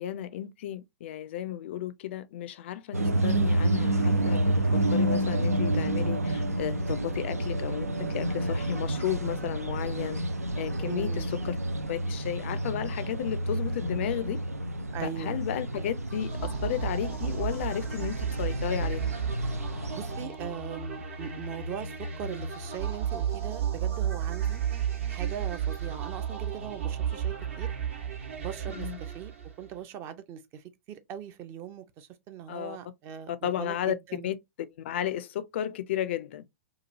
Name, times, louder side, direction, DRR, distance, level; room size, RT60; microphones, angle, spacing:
voice 1, 0.0-10.2 10.6-11.6 11.9-14.4 15.0-16.3 16.6-19.1 28.7-29.0 32.5-32.8 33.3-33.9 34.2-34.3 34.8-36.4, left 11 dB, 50° left, 0.4 m, -33 dB
sound 1, 2.9-20.2, right 1 dB, 90° right, 0.4 m, -29 dB
voice 2, 10.8-11.3 14.9-15.4 15.7-15.9 19.9-24.6 25.1-27.7 28.4-29.3 29.6-34.3, right 9 dB, 30° right, 0.5 m, -40 dB
sound 2, 16.1-29.7, right 8 dB, 60° right, 1.1 m, -33 dB
2.9 x 2.3 x 2.6 m
figure-of-eight pair, 105°, 8 cm